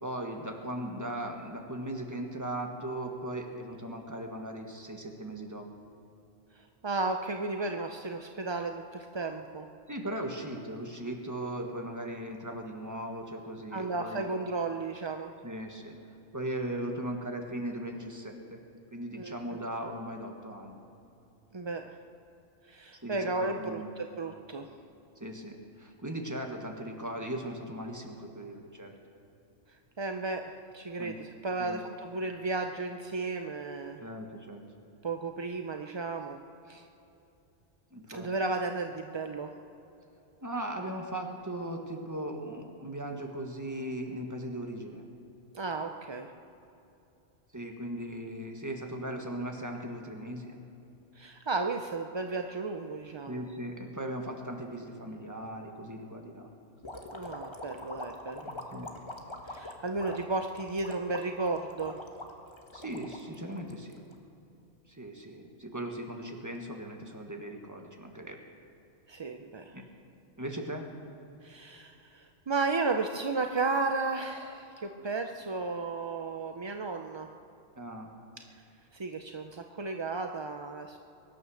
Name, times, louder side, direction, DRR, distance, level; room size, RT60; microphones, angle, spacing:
voice 1, 0.0-5.6 9.9-14.3 15.4-16.0 16.3-18.6 18.9-20.8 23.0-24.0 25.2-28.9 31.0-31.1 31.6-31.8 34.0-34.6 37.9-38.3 40.4-45.0 47.5-50.6 53.3-56.5 58.4-58.9 62.7-64.0 64.9-68.4 69.7-69.8 70.4-70.9 77.8-78.1, right 1 dB, 15° right, 2 dB, 1.5 m, -38 dB
voice 2, 6.6-9.7 13.7-15.3 19.1-19.6 21.5-21.9 22.7-24.7 30.0-34.0 35.0-36.4 36.7-36.8 38.1-39.5 45.5-46.3 51.2-53.5 57.1-58.5 59.4-62.0 69.1-69.8 71.4-77.3 78.5-78.6 78.9-81.0, right 3 dB, 35° right, 5 dB, 0.4 m, -34 dB
sound 1, 56.8-64.1, left 1 dB, 25° left, 1.3 m, -43 dB
23.0 x 9.8 x 6.4 m, 2.8 s
omnidirectional pair, 1.3 m